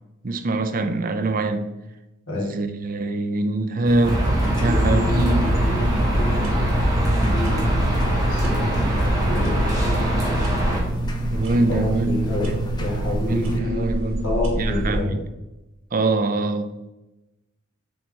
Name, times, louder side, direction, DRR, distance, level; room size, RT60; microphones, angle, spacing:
voice 1, 0.2-1.7 2.3-5.6 11.3-15.3 15.9-16.9, right 2 dB, 40° right, 0.5 m, -25 dB
sound 1, 3.9-13.6, right 2 dB, 20° left, 0.7 m, -29 dB
sound 2, 4.0-10.8, equal, 15° right, 1.5 m, -22 dB
voice 2, 4.6-6.6 7.1-8.0 8.3-8.7 9.2-10.3 11.5-13.9 14.2-15.2, left 2 dB, 80° left, 1.7 m, -29 dB
sound 3, 5.5-15.0, equal, 80° right, 1.3 m, -30 dB
6.8 x 4.0 x 3.8 m
head